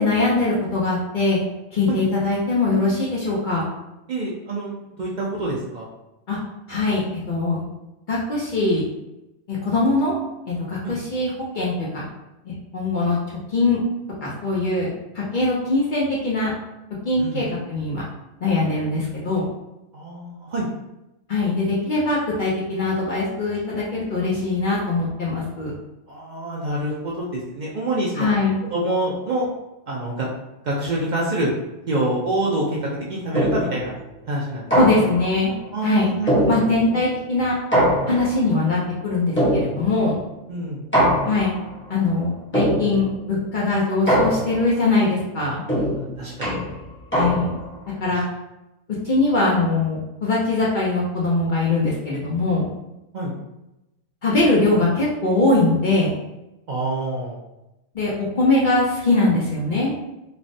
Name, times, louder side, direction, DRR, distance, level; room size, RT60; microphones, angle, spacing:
voice 1, 0.0-1.4 1.7-3.7 6.3-6.4 6.7-7.6 8.1-8.8 9.5-10.1 10.5-12.0 12.4-13.2 13.5-13.8 14.2-14.9 15.1-16.5 17.0-18.0 18.4-19.5 21.3-25.7 28.2-28.6 34.7-35.5 35.8-36.2 36.5-37.6 38.1-40.1 41.3-41.5 41.9-45.6 47.1-47.5 48.0-48.2 49.0-52.7 54.2-56.1 57.9-59.9, left 2 dB, 55° left, -5 dB, 0.6 m, -21 dB
voice 2, 4.1-4.7 5.0-5.9 10.8-11.0 17.2-17.4 19.9-20.7 26.1-28.3 28.7-29.5 29.9-30.3 30.6-31.5 31.9-33.9 34.3-34.7 35.7-36.4 36.7-36.9 38.1-38.2 40.5-40.8 45.9-46.6 53.1-53.3 56.7-57.4, right 2 dB, 70° right, -4 dB, 0.4 m, -26 dB
sound 1, 33.3-33.9 34.7-35.4 36.3-37.0 37.7-38.5 39.4-40.1 40.9-41.7 42.5-43.2 44.1-44.8 45.7-47.7, equal, 10° left, 0.6 m, -22 dB
3.2 x 2.0 x 2.6 m, 0.95 s
omnidirectional pair, 1.3 m